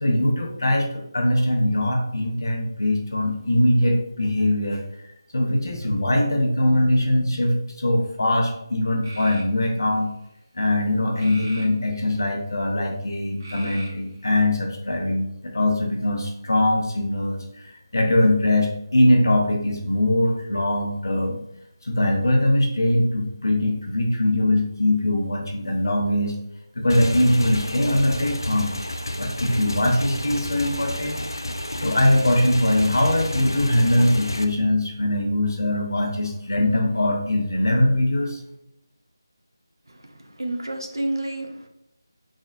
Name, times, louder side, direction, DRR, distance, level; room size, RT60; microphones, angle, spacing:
voice 1, 0.0-4.8 5.3-10.1 10.6-17.7 17.9-21.4 21.8-26.3 26.7-28.7 29.2-31.2 31.8-38.4, left 1 dB, 55° left, 2 dB, 0.8 m, -21 dB
sound 1, 9.0-9.5 11.1-12.2 13.4-14.2, right 1 dB, 40° right, 1.2 m, -40 dB
Motorcycle / Engine, 26.9-34.4, left 1 dB, 70° left, 0.4 m, -31 dB
voice 2, 39.9-41.7, right 1 dB, 70° right, 3 dB, 0.7 m, -30 dB
4.0 x 3.6 x 2.6 m, 0.79 s
figure-of-eight pair, 160°, 2 cm